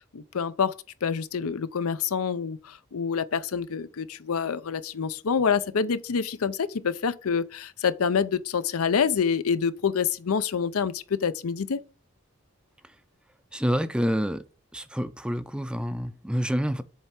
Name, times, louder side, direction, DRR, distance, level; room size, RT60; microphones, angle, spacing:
voice 1, 0.1-11.8, left 6 dB, 85° left, 0.6 m, -27 dB
voice 2, 13.5-14.4 14.7-16.8, equal, 5° right, 0.4 m, -27 dB
7.4 x 3.4 x 5.9 m
head